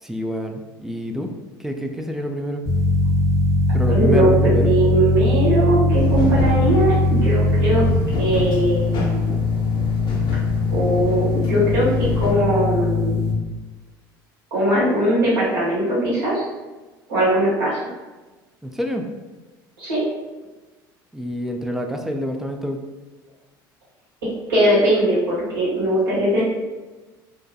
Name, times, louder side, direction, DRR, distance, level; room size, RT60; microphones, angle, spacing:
voice 1, 0.0-1.3 1.6-2.7 3.7-4.8 18.6-19.1 21.1-22.8, equal, 5° right, 4 dB, 0.3 m, -27 dB
sound 1, 2.7-13.3, left 2 dB, 25° right, 0.8 m, -20 dB
voice 2, 3.9-7.8 8.2-9.3 10.7-13.2 14.5-16.4 17.1-17.8 19.8-20.0 24.5-26.4, right 1 dB, 90° right, -9 dB, 1.2 m, -20 dB
sound 2, 5.9-12.3, left 3 dB, 40° left, 0.6 m, -30 dB
2.4 x 2.1 x 2.7 m, 1.2 s
hypercardioid pair, 70°, 11 cm